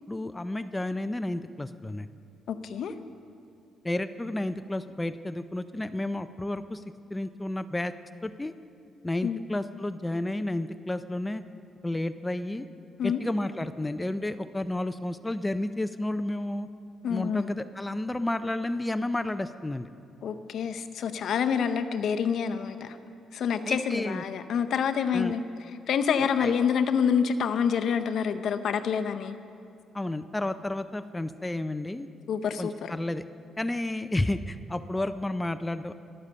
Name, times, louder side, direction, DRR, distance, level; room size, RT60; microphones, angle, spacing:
voice 1, 0.1-2.1 3.8-6.8 7.1-7.9 8.2-8.5 9.0-11.4 11.8-12.7 13.0-16.7 17.1-19.9 23.7-24.2 25.1-25.3 26.2-26.5 29.9-32.1 32.6-33.3 33.6-36.0, left 1 dB, 15° left, 10 dB, 0.4 m, -31 dB
voice 2, 2.5-2.9 9.2-9.4 13.0-13.2 17.0-17.5 20.2-23.0 23.3-25.4 25.9-29.3 32.3-32.9, left 7 dB, 65° left, 9 dB, 0.6 m, -27 dB
11.0 x 9.6 x 6.6 m, 2.6 s
cardioid pair, 90°, 0 cm